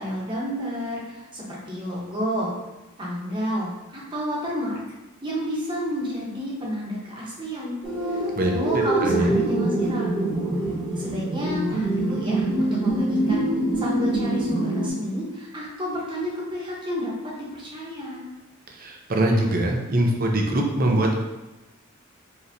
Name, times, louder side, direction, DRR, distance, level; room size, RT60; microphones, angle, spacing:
voice 1, 0.0-2.5 3.0-4.8 5.2-7.8 8.1-10.5 11.0-13.5 13.8-18.3, equal, 25° right, -5 dB, 1.1 m, -30 dB
sound 1, 7.8-14.9, right 2 dB, 5° right, 1.3 m, -24 dB
voice 2, 9.0-9.3 18.8-21.2, right 1 dB, 45° right, 2 dB, 0.6 m, -22 dB
5.0 x 3.1 x 2.7 m, 1.1 s
head